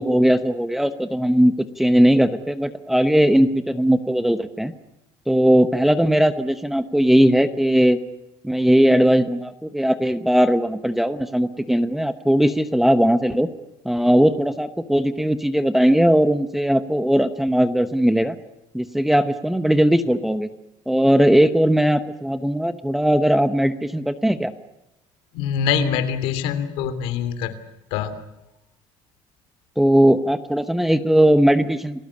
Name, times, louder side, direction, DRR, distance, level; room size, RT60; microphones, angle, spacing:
voice 1, 0.0-4.7 5.3-8.0 8.4-13.5 13.8-18.3 18.7-20.5 20.9-24.5 29.8-32.0, equal, ahead, 11 dB, 0.9 m, -18 dB
voice 2, 25.3-27.5 27.9-28.1, left 7 dB, 80° left, 11 dB, 3.1 m, -24 dB
30.0 x 20.0 x 8.5 m, 0.91 s
cardioid pair, 170°, 10 cm